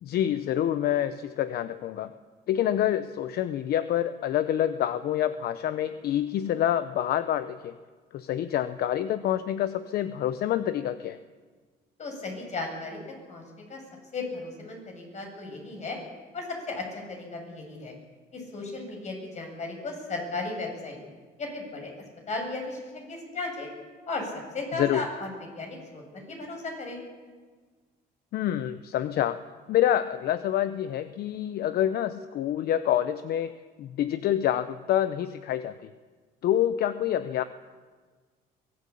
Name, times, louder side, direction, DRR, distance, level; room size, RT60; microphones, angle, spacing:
voice 1, 0.0-2.1 2.5-7.8 8.1-11.2 24.8-25.0 28.3-29.4 29.7-35.9 36.4-37.4, left 11 dB, 65° left, 13 dB, 0.9 m, -27 dB
voice 2, 12.0-13.0 13.3-13.4 13.7-13.8 14.1-16.0 16.3-17.9 18.3-21.0 21.4-21.9 22.3-23.7 24.1-25.3 25.6-27.0, left 3 dB, 45° left, 2 dB, 7.5 m, -35 dB
23.0 x 18.0 x 8.6 m, 1.5 s
cardioid pair, 110°, 17 cm